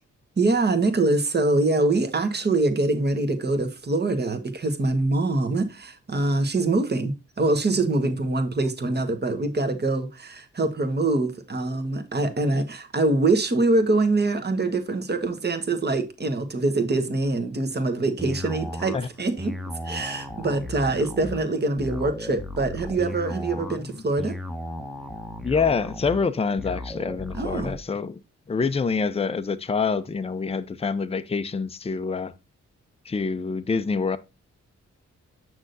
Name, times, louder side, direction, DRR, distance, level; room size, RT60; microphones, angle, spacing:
voice 1, 0.4-19.5 19.8-24.3 27.3-27.8, right 2 dB, 35° right, 1.4 m, -24 dB
sound 1, 18.2-27.8, left 1 dB, ahead, 0.9 m, -35 dB
voice 2, 25.4-28.2 28.5-32.3 33.1-34.2, left 5 dB, 20° left, 0.6 m, -26 dB
7.8 x 6.1 x 2.6 m
cardioid pair, 80°, 29 cm